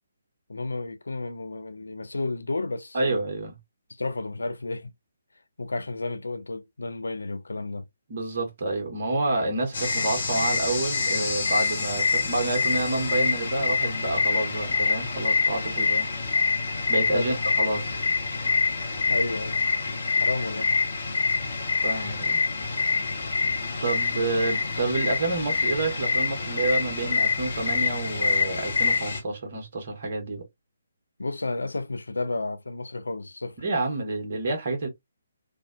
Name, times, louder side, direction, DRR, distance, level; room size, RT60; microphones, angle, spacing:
voice 1, 0.5-3.2 3.9-4.9 5.6-7.9 17.1-17.4 19.1-19.6 20.2-20.7 31.2-33.6, left 2 dB, 70° left, 0.4 m, -32 dB
voice 2, 2.9-3.5 8.1-16.1 16.9-18.0 21.8-22.4 23.6-30.4 33.6-34.9, right 2 dB, 40° right, 1.0 m, -28 dB
sound 1, 9.7-29.2, left 4 dB, 50° left, 0.7 m, -26 dB
2.5 x 2.0 x 2.5 m
figure-of-eight pair, 140°, 0 cm